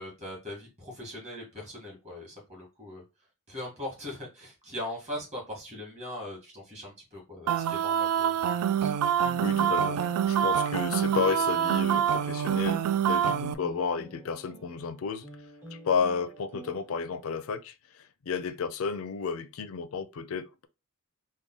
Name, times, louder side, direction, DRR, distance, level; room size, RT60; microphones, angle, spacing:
voice 1, 0.0-3.0 3.5-8.9, left 1 dB, 30° right, 1.7 m, -40 dB
sound 1, 7.5-13.5, right 9 dB, 85° right, 0.3 m, -26 dB
sound 2, 9.2-17.3, right 1 dB, 10° right, 0.8 m, -48 dB
voice 2, 9.4-10.0 10.3-15.3 15.7-20.7, left 5 dB, 70° left, 0.4 m, -32 dB
3.6 x 2.2 x 3.7 m
head